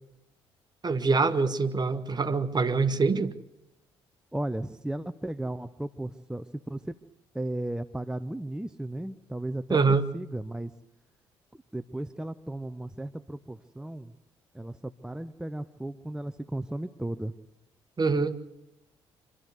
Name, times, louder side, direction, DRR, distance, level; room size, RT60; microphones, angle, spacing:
voice 1, 0.8-3.3 9.7-10.0 18.0-18.4, right 4 dB, 35° right, 11 dB, 1.4 m, -24 dB
voice 2, 4.3-6.9 7.3-10.7 11.7-14.1 14.5-17.3, right 1 dB, 5° right, 11 dB, 0.8 m, -35 dB
26.0 x 12.5 x 8.1 m, 0.85 s
hypercardioid pair, 50°, 13 cm